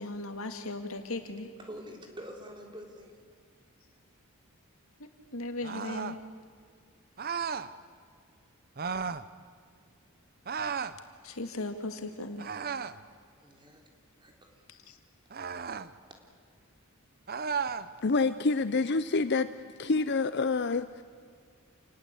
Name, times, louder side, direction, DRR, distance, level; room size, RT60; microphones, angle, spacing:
voice 1, 0.0-1.5 5.3-6.2 11.2-12.5 14.7-15.0, left 2 dB, 75° left, 6 dB, 2.3 m, -37 dB
voice 2, 1.7-3.1 13.4-13.8 14.2-14.6, equal, 20° right, 2 dB, 3.6 m, -46 dB
sound 1, 5.6-6.2 7.2-7.7 8.8-9.3 10.5-11.0 12.4-13.0 15.3-15.9 17.3-17.9, right 6 dB, 45° right, 0.8 m, -34 dB
voice 3, 18.0-19.5 19.8-21.0, left 3 dB, 50° left, 12 dB, 0.6 m, -27 dB
28.5 x 20.0 x 8.4 m, 2.1 s
head